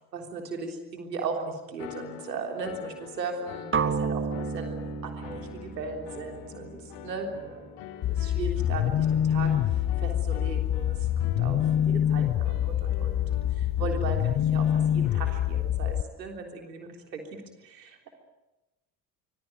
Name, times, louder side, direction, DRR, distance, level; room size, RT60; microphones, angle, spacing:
voice 1, 0.1-4.8 5.0-18.1, right 4 dB, 75° right, 3 dB, 3.7 m, -37 dB
sound 1, 1.8-15.5, left 11 dB, 60° left, 1.8 m, -45 dB
sound 2, 3.7-7.7, right 5 dB, 25° right, 1.9 m, -32 dB
sound 3, 8.0-16.0, left 10 dB, 35° left, 1.0 m, -26 dB
26.0 x 20.5 x 9.4 m, 1.0 s
figure-of-eight pair, 55°, 50 cm